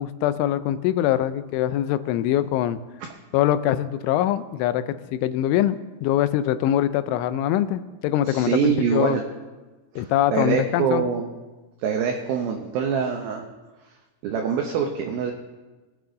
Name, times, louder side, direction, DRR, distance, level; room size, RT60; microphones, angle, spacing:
voice 1, 0.0-2.8 3.3-9.2 10.0-11.0, left 12 dB, 85° left, 13 dB, 3.0 m, -23 dB
voice 2, 8.3-9.2 9.9-11.3 11.8-13.4 14.2-15.3, right 7 dB, 85° right, 3 dB, 2.1 m, -24 dB
21.5 x 8.5 x 3.9 m, 1.2 s
omnidirectional pair, 5.4 m